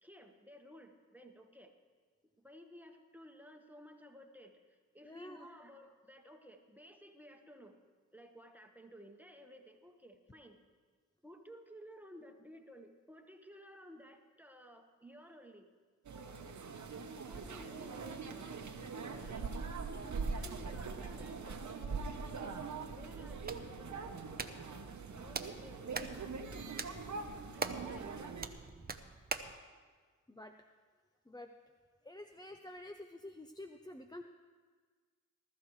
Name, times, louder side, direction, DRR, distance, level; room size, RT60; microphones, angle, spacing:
voice 1, 0.0-1.7 2.4-7.8 8.1-10.7 11.2-15.7 17.2-18.6 19.2-19.5 20.3-22.2 22.6-24.6 25.1-26.7 27.5-28.2, equal, 5° right, 3 dB, 1.3 m, -56 dB
voice 2, 5.0-5.5 30.3-30.5 31.3-31.5 32.0-34.2, left 1 dB, 15° left, 6 dB, 0.6 m, -49 dB
sound 1, 16.0-28.5, right 4 dB, 70° right, 1.0 m, -42 dB
Hands, 23.1-29.6, right 4 dB, 30° right, 0.8 m, -44 dB
19.5 x 13.0 x 3.2 m, 1.5 s
cardioid pair, 65°, 30 cm